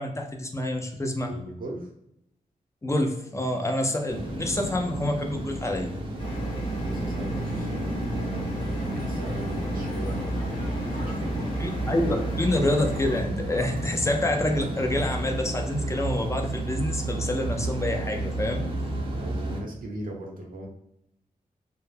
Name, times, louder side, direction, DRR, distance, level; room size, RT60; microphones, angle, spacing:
voice 1, 0.0-1.3 2.8-5.9 11.6-18.7, left 1 dB, 20° left, 3 dB, 0.4 m, -27 dB
voice 2, 1.3-1.9 6.2-8.5 9.0-11.5 18.7-20.7, right 1 dB, 75° right, 0 dB, 0.7 m, -39 dB
sound 1, 4.1-19.6, right 1 dB, 35° right, 0.5 m, -32 dB
sound 2, 6.2-13.2, equal, 35° left, 1.0 m, -33 dB
Crowd, 8.6-13.9, left 2 dB, 85° left, 0.7 m, -46 dB
2.3 x 2.1 x 3.0 m, 0.80 s
wide cardioid pair, 90°, 15 cm